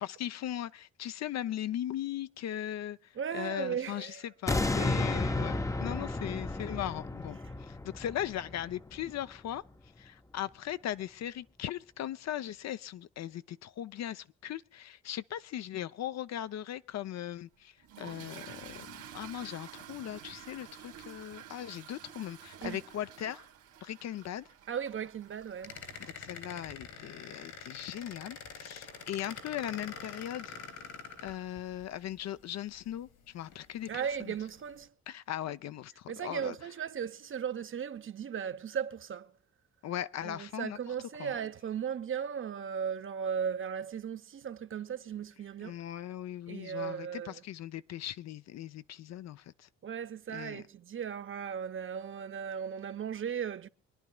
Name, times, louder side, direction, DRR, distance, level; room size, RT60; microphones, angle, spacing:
voice 1, 0.0-3.0 3.3-9.6 10.0-23.5 23.8-24.5 26.0-30.6 31.2-33.9 34.3-34.4 35.1-36.5 39.8-40.8 41.2-41.3 45.6-49.7 50.3-50.6, left 11 dB, 60° left, 0.6 m, -39 dB
voice 2, 3.2-4.2 4.8-5.2 7.4-7.5 22.6-22.8 24.7-25.8 33.9-34.9 36.1-39.3 40.2-45.8 46.5-47.4 49.8-53.7, right 8 dB, 45° right, 0.7 m, -37 dB
sound 1, 4.5-9.6 10.0-10.1, left 2 dB, 10° left, 0.6 m, -33 dB
Toilet flush / Fill (with liquid), 17.8-26.1, right 9 dB, 80° right, 2.2 m, -50 dB
sound 2, 25.6-31.8 32.8-32.9 33.4-33.9 34.5-34.7, left 5 dB, 80° left, 3.9 m, -46 dB
25.0 x 10.5 x 2.2 m
cardioid pair, 90°, 30 cm